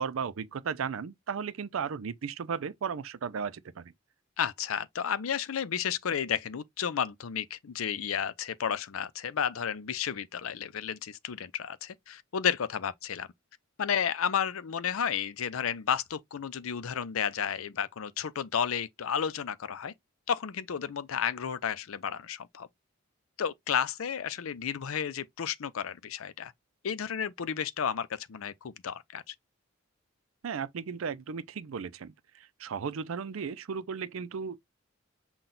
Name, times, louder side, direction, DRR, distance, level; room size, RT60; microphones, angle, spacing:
voice 1, 0.0-3.9 30.4-34.6, right 6 dB, 75° right, 0.5 m, -35 dB
voice 2, 4.4-13.3 13.8-19.9 20.3-22.7 23.4-26.5 26.8-29.3, left 8 dB, 85° left, 0.5 m, -32 dB
5.8 x 2.3 x 3.9 m
head